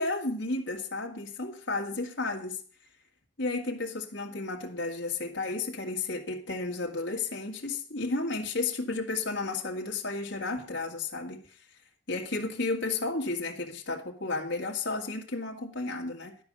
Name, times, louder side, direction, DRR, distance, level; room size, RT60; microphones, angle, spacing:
voice 1, 0.0-2.6 3.4-11.4 12.1-16.4, left 3 dB, 60° left, 2.0 m, -32 dB
12.0 x 5.4 x 8.7 m
head